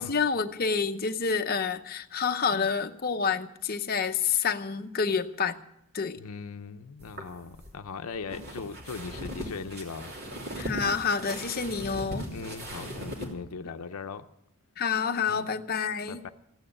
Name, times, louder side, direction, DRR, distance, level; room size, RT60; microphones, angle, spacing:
voice 1, 0.0-5.6 5.9-6.2 10.6-12.3 14.8-16.2, left 6 dB, 45° left, 0.7 m, -28 dB
voice 2, 6.2-10.1 12.3-14.2 15.3-15.5 16.1-16.3, left 5 dB, 80° left, 0.6 m, -39 dB
sound 1, 7.0-13.3, equal, 45° right, 3.0 m, -39 dB
15.5 x 9.2 x 8.5 m
head